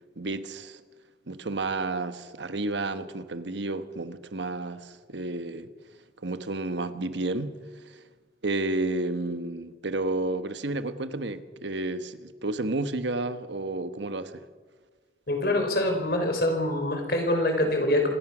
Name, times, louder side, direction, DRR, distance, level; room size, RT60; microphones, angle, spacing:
voice 1, 0.2-0.8 1.3-5.7 6.2-8.0 8.4-14.4, right 2 dB, 80° right, 1.2 m, -31 dB
voice 2, 15.3-18.1, left 1 dB, 55° left, 4.5 m, -25 dB
25.5 x 17.5 x 6.2 m
head